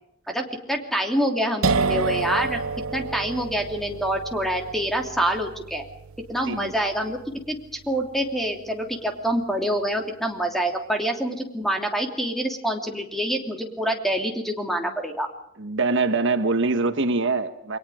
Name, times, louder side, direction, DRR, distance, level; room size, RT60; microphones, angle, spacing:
voice 1, 0.3-2.6 2.9-5.8 6.3-7.2 7.5-7.6 7.9-15.3, right 1 dB, ahead, 3 dB, 2.9 m, -26 dB
sound 1, 1.6-9.2, right 4 dB, 90° right, 0.8 m, -30 dB
voice 2, 15.6-17.8, right 3 dB, 60° right, 8 dB, 1.3 m, -23 dB
29.0 x 22.0 x 5.0 m, 0.76 s
head